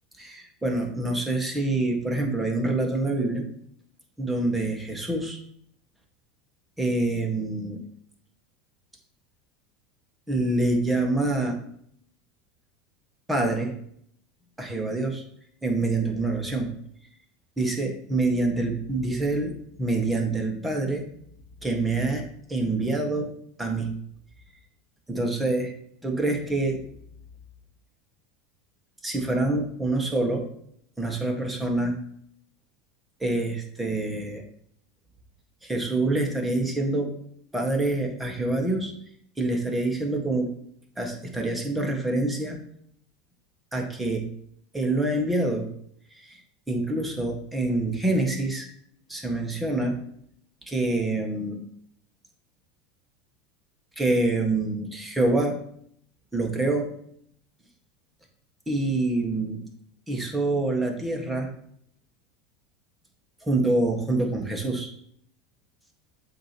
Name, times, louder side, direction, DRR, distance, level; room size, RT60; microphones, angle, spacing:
voice 1, 0.2-3.5 4.2-5.4 6.8-7.8 10.3-11.6 13.3-13.7 14.6-15.2 15.6-16.7 17.6-21.1 21.6-23.9 25.1-25.7 26.0-26.8 29.0-30.5 31.0-32.0 33.2-34.4 35.6-37.1 37.5-38.9 39.4-40.5 41.0-42.6 43.7-44.3 44.7-45.7 46.1-46.4 46.7-48.7 49.1-50.0 50.7-51.6 54.0-55.6 56.3-56.9 58.7-59.6 60.1-61.5 63.5-64.9, right 2 dB, 10° right, 2 dB, 1.6 m, -26 dB
7.6 x 2.9 x 6.0 m, 0.68 s
supercardioid pair, 105°, 0 cm